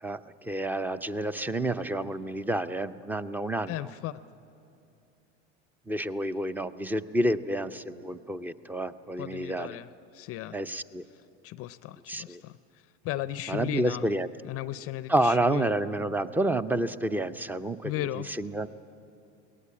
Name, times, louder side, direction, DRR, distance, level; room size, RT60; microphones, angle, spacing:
voice 1, 0.0-3.9 5.9-9.8 10.5-11.0 12.1-12.4 13.5-14.3 15.1-18.7, right 1 dB, 5° right, 14 dB, 0.5 m, -29 dB
voice 2, 3.7-4.1 9.2-10.6 11.4-14.1 14.4-15.7 17.8-18.3, left 14 dB, 40° left, 15 dB, 0.5 m, -36 dB
21.5 x 18.5 x 8.7 m, 2.7 s
hypercardioid pair, 100°, 35 cm